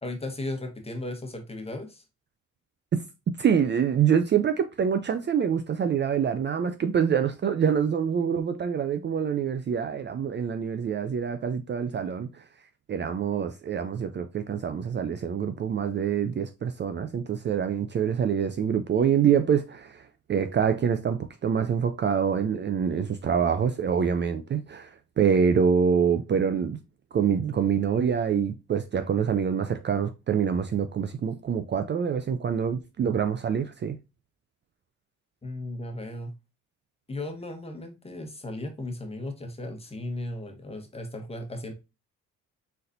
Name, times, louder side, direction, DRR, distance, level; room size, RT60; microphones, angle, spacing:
voice 1, 0.0-2.0 35.4-36.3 37.1-41.7, left 1 dB, 20° left, 1.3 m, -36 dB
voice 2, 3.4-12.4 12.9-26.8 27.1-34.0, right 7 dB, 40° right, 0.5 m, -25 dB
4.2 x 3.9 x 2.6 m
cardioid pair, 90°, 30 cm